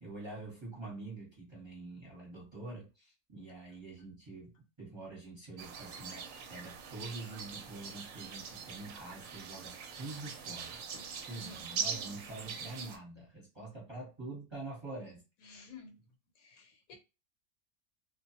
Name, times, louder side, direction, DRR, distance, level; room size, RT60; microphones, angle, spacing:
voice 1, 0.0-10.8 11.3-15.2, right 2 dB, 20° right, 0.9 m, -46 dB
sound 1, 5.6-13.0, right 6 dB, 70° right, 0.9 m, -42 dB
voice 2, 10.9-11.7 15.4-16.0 16.4-16.9, left 4 dB, 75° left, 1.1 m, -53 dB
2.3 x 2.2 x 2.8 m
omnidirectional pair, 1.5 m